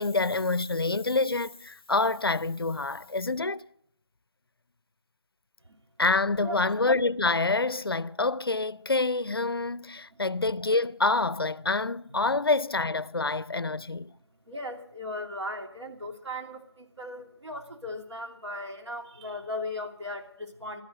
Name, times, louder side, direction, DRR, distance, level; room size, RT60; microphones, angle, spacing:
voice 1, 0.0-3.6 6.0-14.1, left 3 dB, 55° left, 0.6 m, -27 dB
voice 2, 14.5-20.8, left 1 dB, 85° right, 2.8 m, -37 dB
15.5 x 13.0 x 6.4 m
figure-of-eight pair, 170°, 14 cm